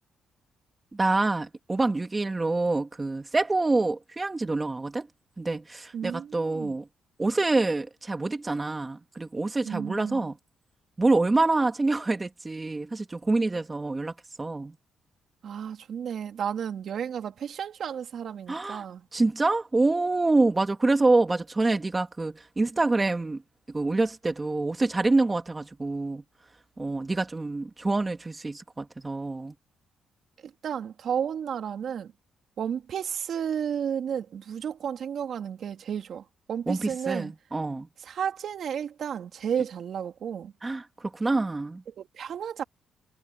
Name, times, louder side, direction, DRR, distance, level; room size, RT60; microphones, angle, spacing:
voice 1, 0.9-5.1 5.4-6.9 7.2-10.4 11.0-14.8 18.5-18.9 19.1-23.4 23.7-26.2 26.8-29.5 36.7-37.9 40.6-41.8, right 2 dB, 20° right, 1.9 m, -26 dB
voice 2, 5.9-6.7 9.6-10.3 15.4-19.0 30.6-32.1 32.6-37.3 38.1-40.5 42.0-42.6, right 8 dB, 60° right, 3.0 m, -32 dB
cardioid pair, 90°, 0 cm